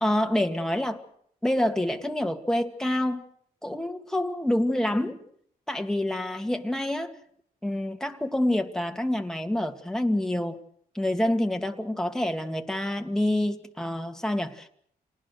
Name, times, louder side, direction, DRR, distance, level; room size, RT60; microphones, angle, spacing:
voice 1, 0.0-1.0 1.4-3.3 3.6-5.2 5.7-7.2 7.6-10.6 10.9-14.7, left 1 dB, 5° left, 4 dB, 2.3 m, -27 dB
27.0 x 19.5 x 6.5 m, 0.66 s
cardioid pair, 85°, 15 cm